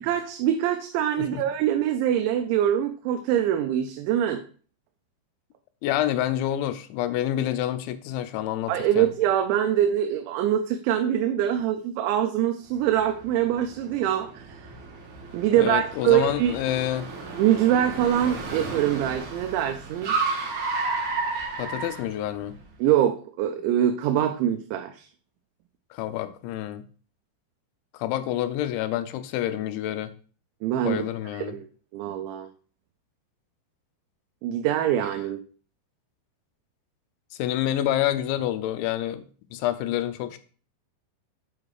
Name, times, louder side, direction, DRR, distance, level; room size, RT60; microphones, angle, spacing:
voice 1, 0.0-4.4 8.7-14.6 15.3-16.6 17.4-20.2 22.8-25.1 30.6-31.0 31.3-31.6 31.9-32.5 34.4-35.4, right 11 dB, 90° right, 6 dB, 3.0 m, -24 dB
voice 2, 5.8-9.1 15.5-17.1 21.6-22.6 25.9-26.8 28.0-30.1 30.8-31.6 37.4-39.2 39.5-40.4, left 12 dB, 90° left, 11 dB, 3.1 m, -28 dB
Car, 12.8-22.7, right 3 dB, 55° right, 2.4 m, -33 dB
8.0 x 4.9 x 4.7 m, 0.41 s
omnidirectional pair, 5.2 m